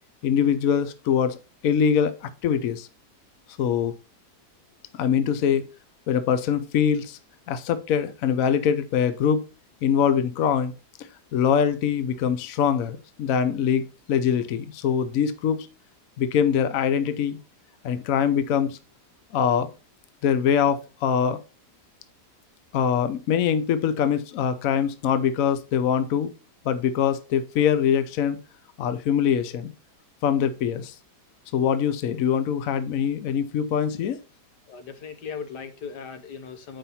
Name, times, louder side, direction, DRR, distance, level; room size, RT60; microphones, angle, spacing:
voice 1, 0.2-1.4 1.6-2.9 3.6-3.9 4.9-5.6 6.1-7.2 7.5-9.4 9.8-10.7 11.0-15.7 16.2-17.4 17.8-18.8 19.3-19.7 20.2-21.4 22.7-26.3 26.6-28.4 28.8-29.7 30.2-30.9 31.5-34.2, left 8 dB, 65° left, 1.0 m, -23 dB
voice 2, 34.7-36.8, left 6 dB, 80° left, 1.7 m, -38 dB
7.3 x 5.6 x 4.1 m
omnidirectional pair, 1.8 m